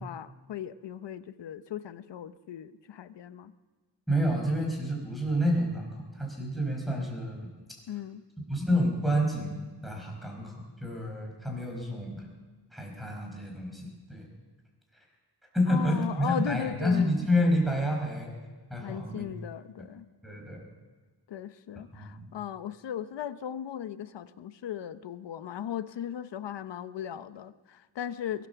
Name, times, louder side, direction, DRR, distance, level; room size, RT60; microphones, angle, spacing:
voice 1, 0.0-3.5 7.9-8.2 15.7-17.1 18.8-20.1 21.3-28.5, left 9 dB, 80° left, 13 dB, 0.8 m, -37 dB
voice 2, 4.1-7.4 8.5-10.5 10.8-12.3 12.7-14.3 14.9-15.0 15.5-18.3 18.7-19.3 20.2-20.6 21.9-22.3, equal, ahead, 0 dB, 5.0 m, -29 dB
22.0 x 9.4 x 6.9 m, 1.3 s
wide cardioid pair, 130°, 42 cm